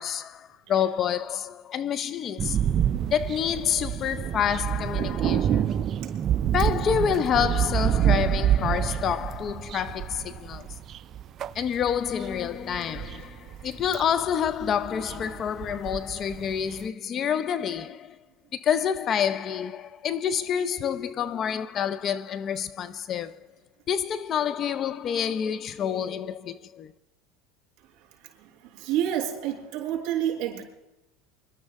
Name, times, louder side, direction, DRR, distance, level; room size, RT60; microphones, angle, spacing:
voice 1, 0.0-2.6 3.1-5.8 6.5-10.8 11.5-18.2 18.5-23.5 23.9-26.9, left 8 dB, 35° left, 0.6 m, -28 dB
voice 2, 0.7-1.0 3.5-3.6 28.4-30.6, right 10 dB, 55° right, 5.6 m, -29 dB
sound 1, 2.4-16.8, right 10 dB, 40° right, 0.5 m, -27 dB
25.0 x 12.0 x 3.6 m
supercardioid pair, 120°, 0 cm